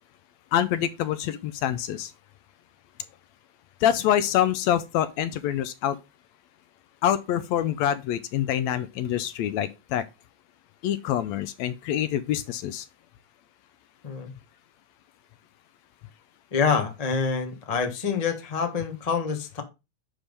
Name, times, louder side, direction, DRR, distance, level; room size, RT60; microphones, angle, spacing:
voice 1, 0.5-2.1 3.8-6.0 7.0-10.0 10.8-12.9, left 11 dB, 80° left, 1.7 m, -26 dB
voice 2, 16.5-19.6, left 5 dB, 30° left, 0.6 m, -26 dB
10.0 x 3.7 x 5.4 m
omnidirectional pair, 3.4 m